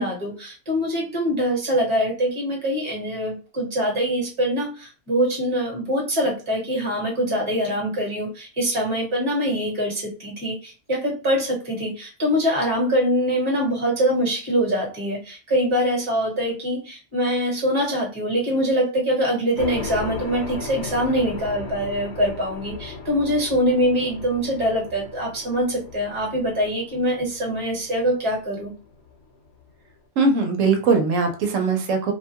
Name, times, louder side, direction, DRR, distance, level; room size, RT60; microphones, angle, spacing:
voice 1, 0.0-28.7, equal, 25° right, -1 dB, 1.1 m, -24 dB
sound 1, 19.6-29.7, left 4 dB, 65° left, 0.9 m, -37 dB
voice 2, 30.2-32.1, right 4 dB, 85° right, 4 dB, 1.0 m, -20 dB
2.5 x 2.2 x 2.8 m, 0.34 s
omnidirectional pair, 1.3 m